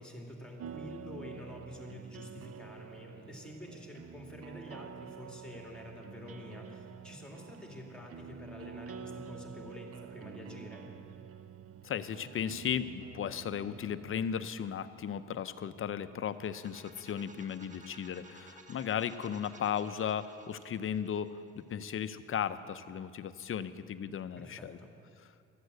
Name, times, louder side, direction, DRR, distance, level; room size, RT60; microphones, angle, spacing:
voice 1, 0.0-10.9 24.3-24.9, left 1 dB, 5° left, 0 dB, 2.4 m, -48 dB
sound 1, 0.6-14.3, right 6 dB, 50° right, 0.6 m, -48 dB
voice 2, 11.8-24.8, left 8 dB, 45° left, 13 dB, 0.6 m, -36 dB
sound 2, 16.3-22.1, right 2 dB, 25° right, 1.3 m, -56 dB
13.0 x 8.0 x 7.9 m, 2.5 s
cardioid pair, 90°, 30 cm